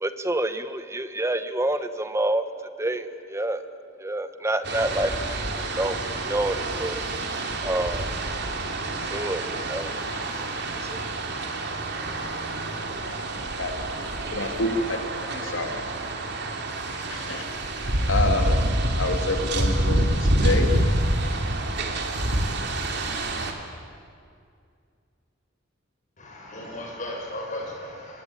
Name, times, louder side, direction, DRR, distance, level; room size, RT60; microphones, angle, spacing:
voice 1, 0.0-2.4 2.8-3.6 4.0-5.4 5.8-7.0 7.6-8.1 9.1-9.9 10.9-11.0, right 1 dB, 15° right, 10 dB, 1.2 m, -27 dB
sound 1, 4.6-23.5, right 1 dB, 60° right, 3.0 m, -27 dB
voice 2, 13.4-13.7 14.3-15.0 15.3-15.8 17.1-17.5 18.1-18.6 19.0-20.7, left 2 dB, 75° left, 5 dB, 2.9 m, -27 dB
voice 3, 26.2-28.2, left 1 dB, 40° left, -2 dB, 7.0 m, -36 dB
26.5 x 23.0 x 9.0 m, 2.2 s
head